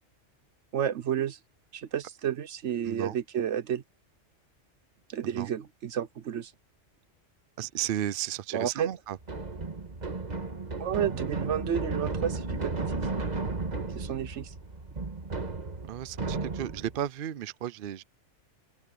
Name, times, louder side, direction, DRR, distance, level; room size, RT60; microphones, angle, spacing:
voice 1, 0.7-1.4 1.7-3.8 5.1-6.5 8.5-8.9 10.8-13.1 13.9-14.5, right 9 dB, 75° right, 1.2 m, -31 dB
voice 2, 7.6-9.2 15.8-18.0, right 11 dB, 55° right, 0.7 m, -34 dB
sound 1, 9.2-17.0, right 3 dB, 35° right, 1.6 m, -34 dB
open air
omnidirectional pair, 1.2 m